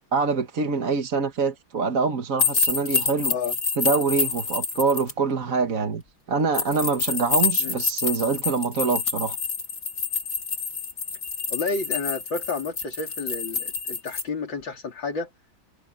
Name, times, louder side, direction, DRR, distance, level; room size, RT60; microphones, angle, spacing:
voice 1, 0.1-3.3 3.8-6.0 6.3-9.4, right 5 dB, 45° right, 1.7 m, -25 dB
sound 1, 2.4-5.1 6.5-14.2, left 5 dB, 35° left, 2.8 m, -27 dB
voice 2, 11.5-15.3, left 4 dB, 65° left, 4.0 m, -31 dB
omnidirectional pair, 2.2 m